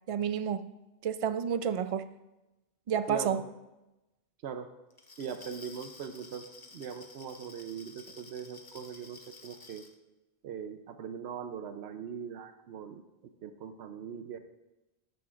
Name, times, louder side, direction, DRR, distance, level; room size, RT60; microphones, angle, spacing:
voice 1, 0.1-0.7 1.0-2.1 2.9-3.4, right 8 dB, 60° right, 0.3 m, -30 dB
voice 2, 3.1-3.4 4.4-4.7 5.2-6.4 6.7-9.8 10.4-13.0 13.4-14.4, right 7 dB, 85° right, 0.9 m, -40 dB
Glass, 4.9-9.9, left 3 dB, 25° left, 0.6 m, -52 dB
13.0 x 11.0 x 2.4 m
omnidirectional pair, 1.1 m